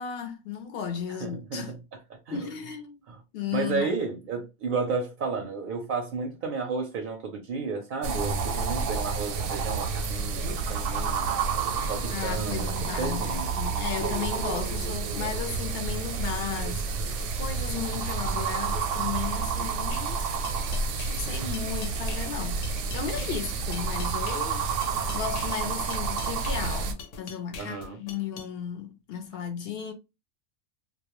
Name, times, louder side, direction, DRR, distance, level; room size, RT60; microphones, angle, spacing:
voice 1, 0.0-1.7 2.3-3.0 3.3-3.9 11.8-20.2 21.1-24.7 25.1-29.9, left 8 dB, 65° left, 0.7 m, -35 dB
voice 2, 1.2-1.8 2.1-2.4 3.1-3.2 3.5-11.4 11.7-13.5 23.2-23.3 27.6-28.0, right 4 dB, 60° right, 0.5 m, -32 dB
sound 1, 8.0-26.9, right 5 dB, 85° right, 0.9 m, -29 dB
sound 2, 19.9-28.5, left 5 dB, 90° left, 0.9 m, -44 dB
2.3 x 2.1 x 2.9 m
omnidirectional pair, 1.2 m